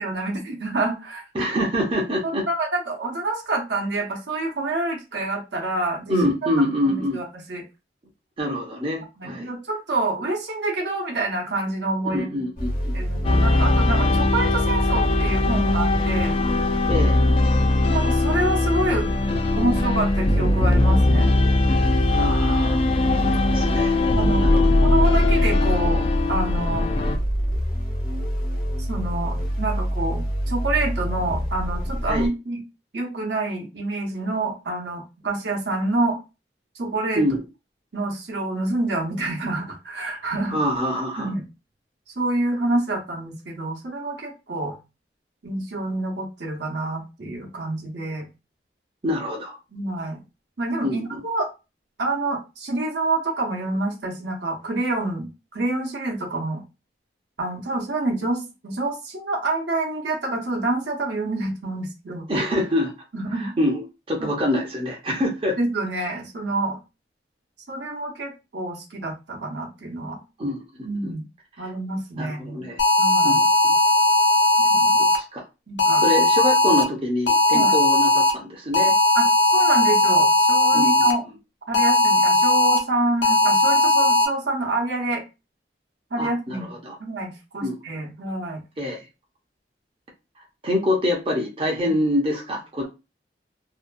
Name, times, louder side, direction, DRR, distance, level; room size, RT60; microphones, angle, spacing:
voice 1, 0.0-1.2 2.2-6.2 6.8-7.6 9.2-12.4 12.9-16.4 17.9-19.1 19.5-21.3 23.3-23.4 24.1-26.9 28.9-32.6 32.9-36.2 36.8-37.2 37.9-40.6 41.2-41.4 42.2-44.8 45.4-48.3 49.7-50.2 50.6-51.5 52.0-56.6 57.4-62.2 63.1-63.5 64.2-64.3 65.6-66.8 67.7-70.2 70.8-71.3 71.6-72.6 73.0-73.4 74.7-75.1 75.7-76.0 77.5-77.8 79.1-81.2 81.7-85.2 86.1-86.7 87.0-88.6 91.8-91.9, right 2 dB, 75° right, 0 dB, 0.9 m, -27 dB
voice 2, 1.3-2.5 6.1-7.2 8.4-9.5 12.0-13.0 16.9-17.2 22.1-22.8 23.2-24.0 24.4-24.7 32.1-32.3 37.2-37.4 40.5-41.3 49.0-49.6 50.8-51.2 62.3-62.9 63.3-65.6 70.4-70.6 71.0-71.1 71.6-71.7 72.2-72.8 73.2-73.7 75.1-75.4 76.0-79.0 80.7-81.1 86.2-87.0 87.6-87.8 88.8-89.0 90.6-92.9, left 1 dB, 30° right, -1 dB, 0.6 m, -25 dB
sound 1, 12.6-32.3, equal, 50° left, 0.7 m, -27 dB
sound 2, 13.2-27.2, left 2 dB, 30° left, 0.3 m, -20 dB
sound 3, 72.8-75.2 75.8-76.8 77.3-78.3 78.7-81.1 81.7-82.8 83.2-84.2, left 1 dB, 80° left, 0.7 m, -18 dB
2.7 x 2.2 x 2.5 m, 0.27 s
head